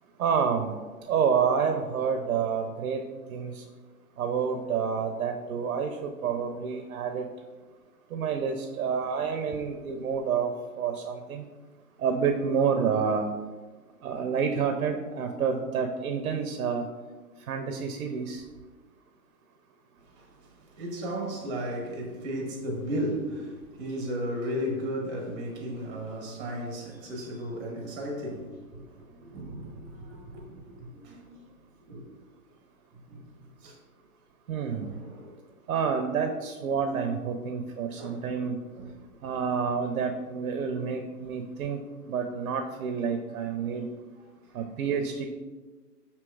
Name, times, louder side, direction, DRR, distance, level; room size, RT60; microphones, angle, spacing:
voice 1, 0.2-0.8 1.1-3.6 4.2-7.3 8.1-11.4 12.0-13.3 14.0-16.9 17.5-18.4 34.5-35.0 35.7-38.6 39.2-43.9 44.5-45.3, right 6 dB, 70° right, 0.6 m, -29 dB
voice 2, 20.8-31.4 31.9-32.1 33.1-33.2 33.6-33.7 34.7-35.3 38.0-38.2 38.8-38.9 43.7-44.0, equal, 15° right, 0.6 m, -35 dB
6.0 x 2.8 x 2.3 m
hypercardioid pair, 130°, 46 cm